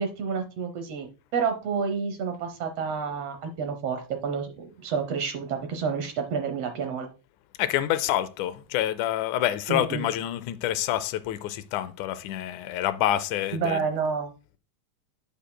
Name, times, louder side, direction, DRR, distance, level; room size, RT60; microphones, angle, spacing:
voice 1, 0.0-7.1 9.7-10.1 13.5-14.3, right 5 dB, 65° right, 1.6 m, -29 dB
voice 2, 7.6-13.8, left 12 dB, 80° left, 2.0 m, -27 dB
8.6 x 8.2 x 2.2 m
omnidirectional pair, 3.5 m